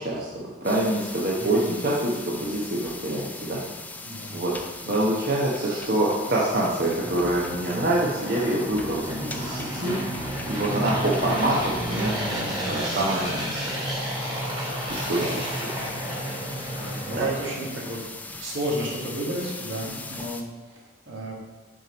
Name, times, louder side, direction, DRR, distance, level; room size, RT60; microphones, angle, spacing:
voice 1, 0.0-3.6 4.3-4.5 4.9-10.0 10.5-13.7 14.9-15.5 17.1-17.3, right 1 dB, 50° right, -5 dB, 1.0 m, -26 dB
sound 1, 0.6-20.4, left 3 dB, 10° left, 0.3 m, -40 dB
voice 2, 1.4-1.7 4.0-4.4 4.8-5.0 10.9-11.2 15.0-15.4 16.8-21.3, right 1 dB, 75° right, -4 dB, 2.0 m, -33 dB
sound 2, 5.4-12.6, equal, 5° right, 1.2 m, -45 dB
sound 3, 5.7-18.0, equal, 25° right, 2.2 m, -32 dB
6.4 x 4.5 x 5.2 m, 1.3 s
head